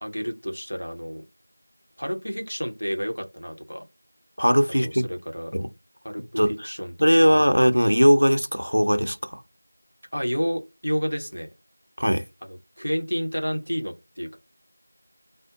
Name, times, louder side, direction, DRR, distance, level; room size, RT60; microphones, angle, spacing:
voice 1, 0.0-1.2 2.0-3.8 4.8-5.5 6.0-7.5 10.1-11.5 12.4-14.4, equal, 60° left, 1.0 m, -30 dB
voice 2, 4.4-5.0 5.5-5.7 6.4-6.7 7.0-9.4 12.0-12.2, equal, 70° right, 0.5 m, -19 dB
2.6 x 2.1 x 3.8 m
figure-of-eight pair, 180°, 0 cm